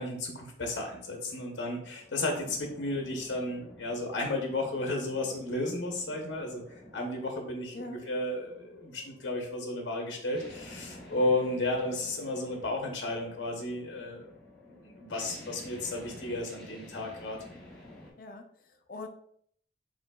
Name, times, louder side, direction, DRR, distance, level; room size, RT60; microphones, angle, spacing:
voice 1, 0.0-6.6 6.9-14.3 14.8-17.4, left 2 dB, 75° left, 1 dB, 0.8 m, -33 dB
sound 1, 1.0-18.1, left 1 dB, 5° left, 1.5 m, -51 dB
voice 2, 7.7-8.1 18.2-19.1, left 2 dB, 50° left, 5 dB, 0.5 m, -43 dB
5.0 x 3.8 x 2.3 m, 0.65 s
head